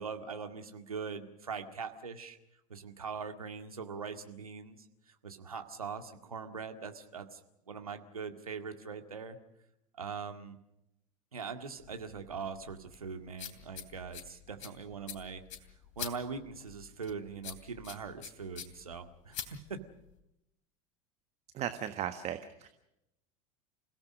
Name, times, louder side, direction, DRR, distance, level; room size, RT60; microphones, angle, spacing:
voice 1, 0.0-2.4 2.7-7.4 7.7-9.4 9.9-10.6 11.3-15.4 16.0-19.8, right 5 dB, 80° right, 6 dB, 2.0 m, -42 dB
sound 1, 11.8-20.2, left 9 dB, 60° left, 3.0 m, -47 dB
voice 2, 21.5-22.7, right 10 dB, 35° right, 9 dB, 1.5 m, -36 dB
29.5 x 17.0 x 6.4 m, 0.85 s
figure-of-eight pair, 80°, 18 cm